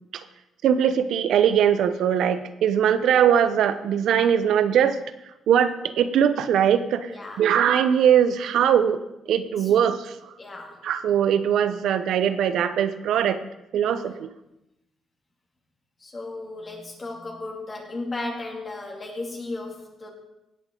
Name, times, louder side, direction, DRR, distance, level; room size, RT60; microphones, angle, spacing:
voice 1, 0.6-5.0 5.5-7.1 7.4-9.0 9.3-10.2 10.8-13.4 13.7-14.3, right 9 dB, 75° right, 12 dB, 0.7 m, -21 dB
voice 2, 7.1-7.5 9.6-9.7 10.4-10.8 13.7-14.1 16.0-20.1, left 2 dB, 35° left, 0 dB, 2.5 m, -35 dB
17.5 x 7.1 x 3.8 m, 0.90 s
cardioid pair, 90°, 0 cm